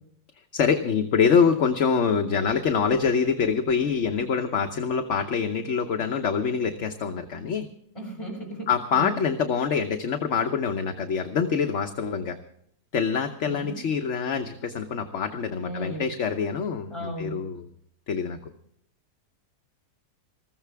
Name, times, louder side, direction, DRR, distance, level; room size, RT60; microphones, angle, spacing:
voice 1, 0.5-7.7 8.7-12.4 12.9-17.7 18.1-18.5, left 6 dB, 50° left, 5 dB, 1.1 m, -25 dB
voice 2, 7.9-9.2 13.4-13.8 15.6-16.0 16.9-17.4, right 1 dB, 20° left, -2 dB, 6.7 m, -35 dB
20.5 x 15.0 x 3.5 m, 0.69 s
omnidirectional pair, 1.7 m